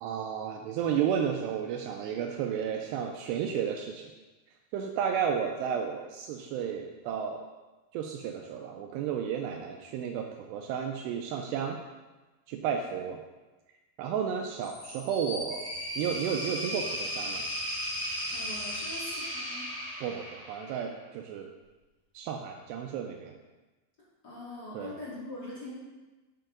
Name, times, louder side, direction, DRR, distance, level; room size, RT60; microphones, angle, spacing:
voice 1, 0.0-4.1 4.7-7.4 7.9-11.8 12.5-13.2 14.0-15.7 16.0-17.5 20.0-21.5 22.1-23.3 24.7-24.9, right 8 dB, 85° right, 3 dB, 2.4 m, -32 dB
sound 1, 14.6-20.8, equal, 50° left, 3.3 m, -36 dB
voice 2, 18.3-19.7 24.2-25.8, left 2 dB, 30° left, -8 dB, 2.0 m, -42 dB
8.7 x 7.4 x 3.9 m, 1.2 s
omnidirectional pair, 5.3 m